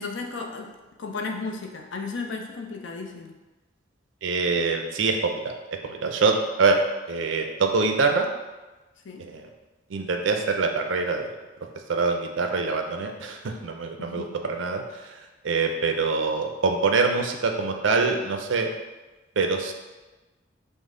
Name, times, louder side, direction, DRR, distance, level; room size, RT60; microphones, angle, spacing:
voice 1, 0.0-3.4 9.0-9.3 14.0-14.5, left 4 dB, 70° left, 2 dB, 0.5 m, -34 dB
voice 2, 4.2-5.5 5.8-6.8 7.1-8.3 9.2-9.5 9.9-11.3 11.9-15.2 15.4-18.7 19.4-19.7, right 4 dB, 75° right, 4 dB, 0.5 m, -24 dB
5.2 x 2.0 x 3.7 m, 1.2 s
head